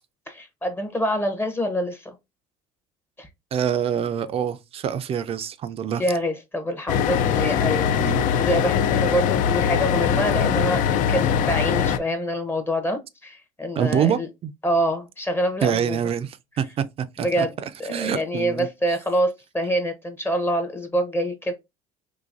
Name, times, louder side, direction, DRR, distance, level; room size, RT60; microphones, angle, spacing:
voice 1, 0.3-2.1 3.2-3.3 6.0-14.3 14.6-16.0 17.2-17.5 17.8-21.5, equal, 15° left, 0.7 m, -26 dB
voice 2, 3.5-6.0 8.0-8.2 13.8-14.5 15.6-18.7, right 8 dB, 40° right, 0.4 m, -26 dB
sound 1, 6.9-12.0, left 8 dB, 55° left, 0.4 m, -21 dB
3.9 x 2.7 x 2.4 m
supercardioid pair, 100°, 16 cm